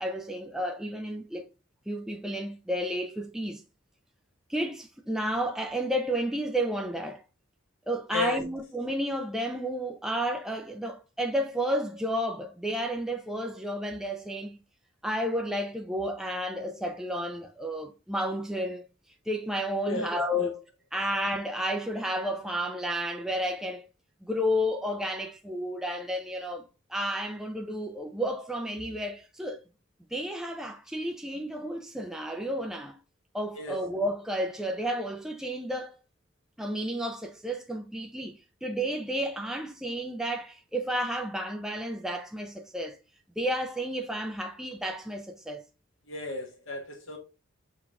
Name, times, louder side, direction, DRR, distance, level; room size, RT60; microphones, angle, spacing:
voice 1, 0.0-1.5 1.9-3.6 4.5-7.2 7.9-14.6 15.0-18.8 19.3-20.6 20.9-23.9 24.3-29.6 30.1-33.0 33.3-36.0 36.6-43.0 43.4-45.6, equal, ahead, 0.4 m, -31 dB
voice 2, 19.9-20.5 33.6-33.8 46.1-47.2, left 3 dB, 65° left, 1.3 m, -33 dB
5.8 x 3.9 x 2.3 m
head